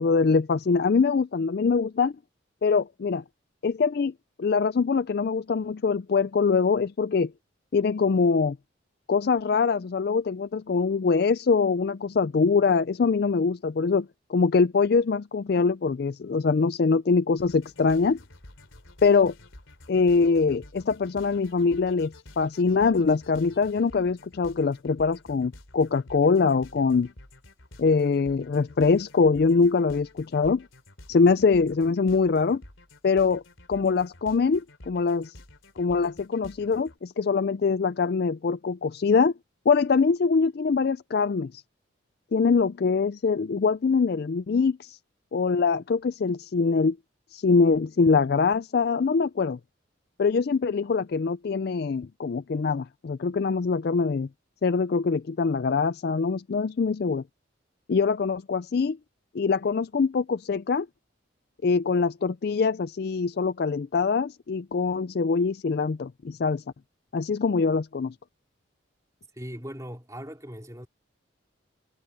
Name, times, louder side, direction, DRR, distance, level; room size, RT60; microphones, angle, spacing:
voice 1, 0.0-2.1 2.6-3.2 3.6-7.3 7.7-8.6 9.1-18.2 19.0-19.3 19.9-27.1 27.8-30.7 31.1-32.6 33.0-33.4 33.7-35.3 35.8-39.3 39.7-41.6 42.3-45.0 45.3-47.0 47.3-49.6 50.2-54.3 54.6-57.2 57.9-59.0 59.3-60.9 61.6-66.6 67.1-68.1, left 4 dB, 50° left, 0.4 m, -23 dB
sound 1, 17.4-37.0, left 1 dB, 85° left, 3.3 m, -50 dB
voice 2, 69.3-70.9, equal, 15° right, 3.7 m, -39 dB
head